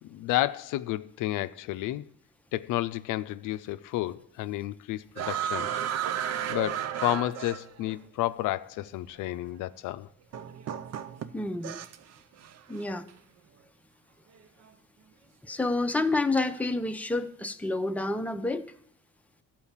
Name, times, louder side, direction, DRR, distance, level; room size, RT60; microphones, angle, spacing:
voice 1, 0.0-2.0 2.5-5.7 6.0-10.1, left 15 dB, 90° left, 0.5 m, -31 dB
sound 1, 5.2-8.0 9.1-9.2 10.3-12.1 12.4-12.8, right 9 dB, 60° right, 0.6 m, -33 dB
voice 2, 11.3-11.8 12.7-13.1 15.4-18.7, left 2 dB, 5° left, 0.6 m, -29 dB
13.0 x 4.5 x 7.2 m
cardioid pair, 90°, 30 cm